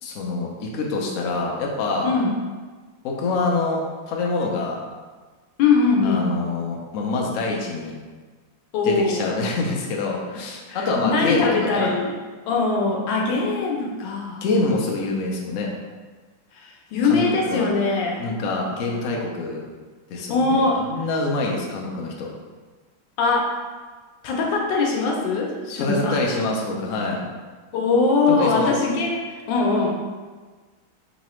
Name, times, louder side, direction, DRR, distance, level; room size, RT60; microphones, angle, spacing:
voice 1, 0.0-2.1 3.0-4.8 6.0-8.0 8.8-11.9 14.4-15.7 17.0-17.7 18.2-19.6 20.1-22.3 25.8-27.2 28.3-28.7, left 3 dB, 90° left, -1 dB, 0.7 m, -25 dB
voice 2, 2.0-2.3 5.6-6.3 8.7-9.4 10.7-12.2 12.5-14.4 16.6-18.2 20.3-20.9 23.2-23.6 24.2-26.2 27.7-29.9, left 4 dB, 75° left, -1 dB, 1.3 m, -22 dB
3.9 x 3.1 x 3.0 m, 1.4 s
omnidirectional pair, 2.2 m